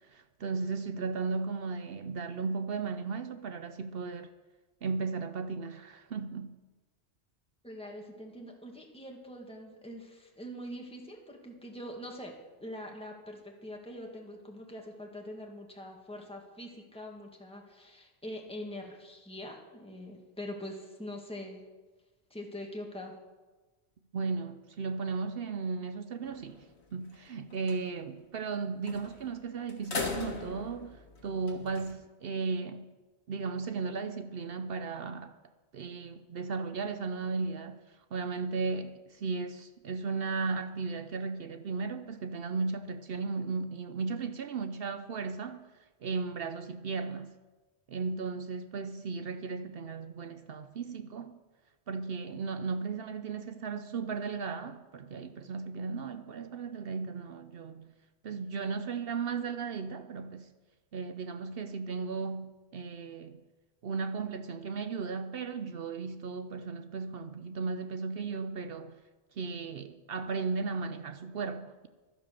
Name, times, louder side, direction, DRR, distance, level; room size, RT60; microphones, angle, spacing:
voice 1, 0.1-4.3 4.8-6.6 24.1-26.6 26.9-32.9 33.3-35.3 35.7-37.8 38.1-45.7 46.0-47.4 47.9-51.4 51.9-57.9 58.2-60.5 60.9-63.4 63.8-68.9 69.4-71.9, right 4 dB, 60° right, 0.8 m, -35 dB
voice 2, 7.6-21.7 22.3-23.2, left 1 dB, 5° left, 1.8 m, -43 dB
sound 1, 26.2-26.7 27.1-27.2 27.5-27.8 28.9-29.3 29.7-31.9, left 3 dB, 75° left, 1.8 m, -39 dB
12.0 x 10.0 x 6.8 m
omnidirectional pair, 1.1 m